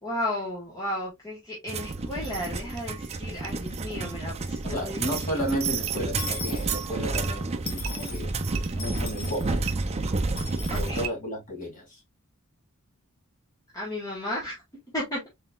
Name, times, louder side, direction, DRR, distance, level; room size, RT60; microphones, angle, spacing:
voice 1, 0.0-5.4 10.7-11.0 13.7-14.6 14.9-15.3, left 1 dB, 15° left, 1.4 m, -34 dB
sound 1, 1.7-11.1, right 3 dB, 30° right, 0.5 m, -30 dB
sound 2, 2.4-2.5 2.7-2.8 3.1-3.2 3.4-3.5 5.9-6.1 7.1-7.4 7.8-8.8 9.6-9.7 11.0-11.1, right 11 dB, 75° right, 0.8 m, -38 dB
voice 2, 4.6-8.3 8.7-9.7 10.7-12.0, equal, 40° left, 2.4 m, -33 dB
Dishes pots and pans / Coin (dropping), 6.2-7.3 7.7-8.2 8.8-9.5 10.4-10.9, left 5 dB, 70° left, 1.2 m, -38 dB
4.1 x 3.9 x 2.3 m
head